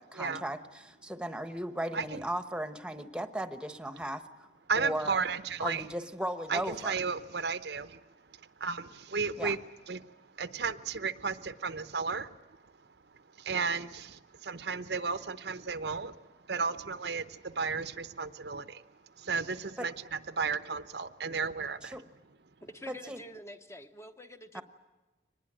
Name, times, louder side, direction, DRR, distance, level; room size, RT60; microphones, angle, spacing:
voice 1, 0.0-4.2 4.8-5.2 5.6-7.0 9.4-9.6 19.8-19.9 21.8-22.0 22.9-23.2 24.5-24.6, right 1 dB, 5° right, 9 dB, 1.1 m, -36 dB
voice 2, 4.7-5.9 6.5-8.0 8.6-9.6 9.9-10.1 10.4-12.4 13.4-18.8 19.2-22.0, right 5 dB, 70° right, 12 dB, 0.8 m, -34 dB
voice 3, 22.6-24.6, equal, 15° left, 8 dB, 1.0 m, -47 dB
24.0 x 20.0 x 8.8 m, 1.1 s
head